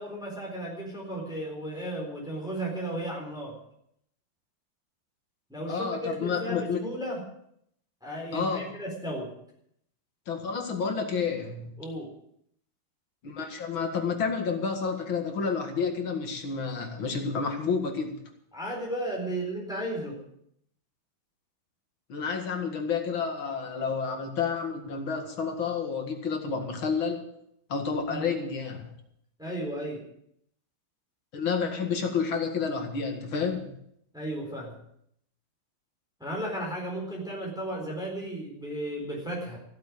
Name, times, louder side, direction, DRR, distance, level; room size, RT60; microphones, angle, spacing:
voice 1, 0.0-3.6 5.5-7.2 8.0-9.3 11.8-12.1 18.5-20.2 28.1-28.3 29.4-30.0 34.1-34.7 36.2-39.6, right 1 dB, ahead, -3 dB, 4.0 m, -34 dB
voice 2, 5.7-6.8 8.3-8.7 10.3-11.7 13.2-18.2 22.1-27.2 27.7-28.9 31.3-33.7, left 5 dB, 75° left, 4 dB, 2.7 m, -30 dB
15.0 x 7.9 x 8.5 m, 0.71 s
omnidirectional pair, 2.2 m